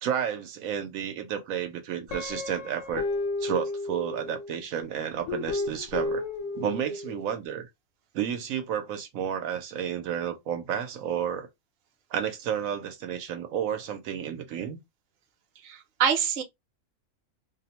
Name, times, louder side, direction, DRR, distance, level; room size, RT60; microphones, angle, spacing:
voice 1, 0.0-3.1 3.4-6.2 6.5-7.7 8.1-11.5 12.1-14.8, right 9 dB, 80° right, 1.0 m, -31 dB
Guitar, 2.1-4.6 5.3-7.2, left 3 dB, 65° left, 1.0 m, -32 dB
voice 2, 15.6-16.4, right 8 dB, 55° right, 0.7 m, -26 dB
2.6 x 2.0 x 2.8 m
omnidirectional pair, 1.4 m